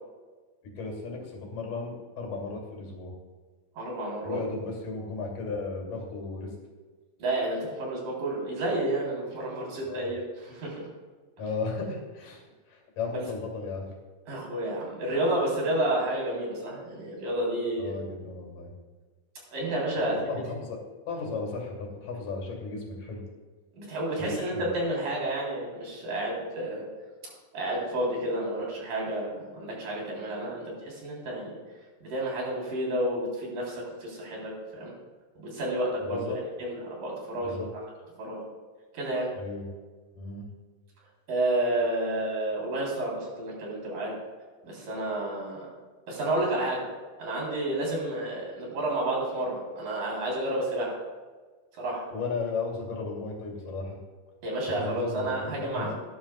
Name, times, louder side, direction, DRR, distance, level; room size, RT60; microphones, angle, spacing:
voice 1, 0.6-3.1 4.2-6.5 9.8-10.1 11.4-12.4 12.7-13.9 17.8-18.7 19.9-20.8 21.1-23.2 24.3-24.7 36.0-36.4 37.4-37.7 39.4-39.6 40.2-40.5 52.1-54.0 54.7-55.9, left 4 dB, 80° left, -1 dB, 4.1 m, -35 dB
voice 2, 3.8-4.4 7.2-10.9 13.1-13.2 14.3-18.0 19.5-20.2 23.8-26.9 27.5-31.6 32.0-34.9 35.4-37.7 38.2-38.4 38.9-39.3 41.3-44.1 44.6-45.7 46.1-46.9 47.2-51.0 51.8-52.1 54.4-55.9, right 1 dB, 90° right, -4 dB, 5.4 m, -30 dB
17.5 x 11.5 x 2.3 m, 1.4 s
omnidirectional pair, 3.8 m